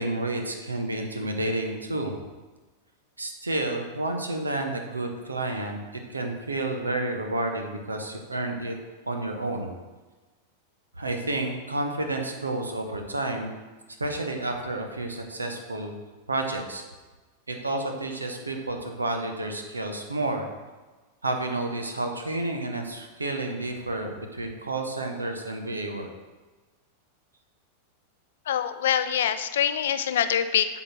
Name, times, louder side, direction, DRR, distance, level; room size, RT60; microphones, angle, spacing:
voice 1, 0.0-2.1 3.2-5.8 6.1-8.7 9.1-9.7 11.0-13.5 14.0-15.9 16.3-16.8 17.5-20.5 21.2-26.1, right 2 dB, 80° right, 4 dB, 0.9 m, -30 dB
voice 2, 28.5-30.8, left 9 dB, 60° left, 11 dB, 0.4 m, -25 dB
7.8 x 4.0 x 6.1 m, 1.2 s
figure-of-eight pair, 90°, 0 cm